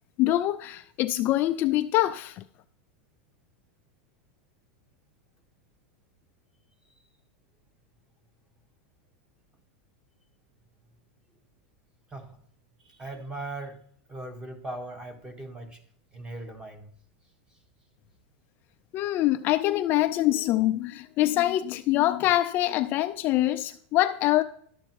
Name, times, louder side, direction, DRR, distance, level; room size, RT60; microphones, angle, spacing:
voice 1, 0.2-2.4 18.9-24.4, left 15 dB, 30° left, 0.3 m, -24 dB
voice 2, 12.1-12.4 12.8-13.8 14.1-15.8 16.1-16.9, right 2 dB, 10° right, 1.2 m, -39 dB
11.5 x 7.3 x 4.5 m
supercardioid pair, 160°, 7 cm